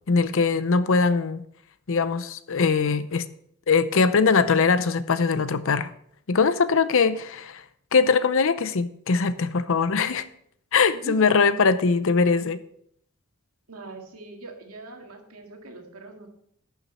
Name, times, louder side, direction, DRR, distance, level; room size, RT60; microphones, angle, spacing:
voice 1, 0.1-1.4 1.9-3.3 3.7-5.9 6.3-7.6 7.9-10.2 10.7-12.6, left 5 dB, 60° left, 14 dB, 0.6 m, -21 dB
voice 2, 10.9-11.2 13.7-16.3, right 3 dB, 80° right, 2 dB, 2.0 m, -41 dB
11.0 x 7.1 x 4.2 m, 0.68 s
head